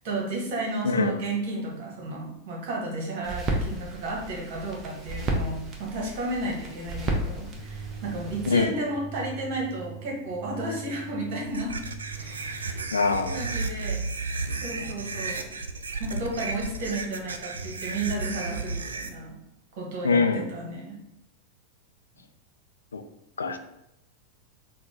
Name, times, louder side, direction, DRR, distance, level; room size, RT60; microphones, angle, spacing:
voice 1, 0.0-11.7 12.1-12.9 13.3-14.0 14.6-15.5 16.0-19.4 19.8-21.0, right 2 dB, 50° right, -1 dB, 1.2 m, -33 dB
voice 2, 0.8-1.2 8.5-8.7 12.9-13.4 20.0-20.5 22.9-23.0 23.4-23.6, left 4 dB, 70° left, 8 dB, 0.3 m, -23 dB
sound 1, 3.2-8.6, right 1 dB, 25° right, 0.7 m, -33 dB
sound 2, 7.5-13.6, right 5 dB, 35° left, 0.9 m, -42 dB
sound 3, 11.5-19.1, right 3 dB, 70° right, 0.3 m, -33 dB
3.7 x 2.2 x 3.8 m, 0.85 s
figure-of-eight pair, 90°, 0 cm